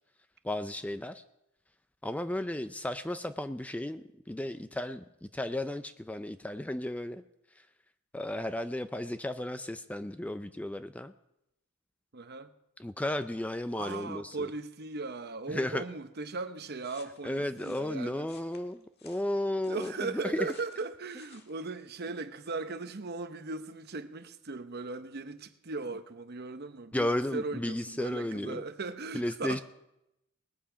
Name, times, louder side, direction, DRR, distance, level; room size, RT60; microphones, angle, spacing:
voice 1, 0.4-1.2 2.0-7.2 8.1-11.1 12.8-14.5 15.5-15.8 17.2-20.5 26.9-28.6 29.1-29.6, left 1 dB, 5° left, 0.4 m, -34 dB
voice 2, 12.1-12.5 13.7-18.3 19.7-29.6, right 3 dB, 50° right, 0.8 m, -38 dB
sound 1, 16.8-21.5, left 5 dB, 50° left, 1.6 m, -58 dB
20.0 x 8.5 x 5.0 m
head